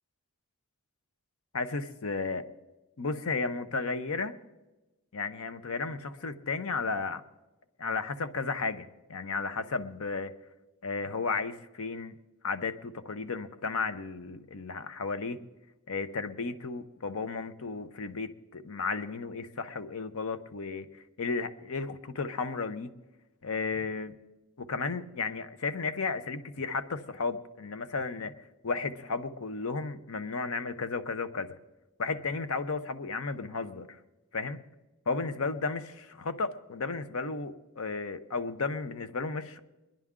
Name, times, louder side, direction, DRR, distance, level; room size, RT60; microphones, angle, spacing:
voice 1, 1.5-2.4 3.0-4.3 5.1-7.2 7.8-10.3 10.8-12.1 12.4-15.4 15.9-22.9 23.4-24.1 24.6-28.3 28.6-31.5 32.0-33.9 34.3-34.6 35.1-39.6, left 4 dB, 75° left, 11 dB, 0.7 m, -34 dB
22.5 x 10.5 x 3.7 m, 1.1 s
head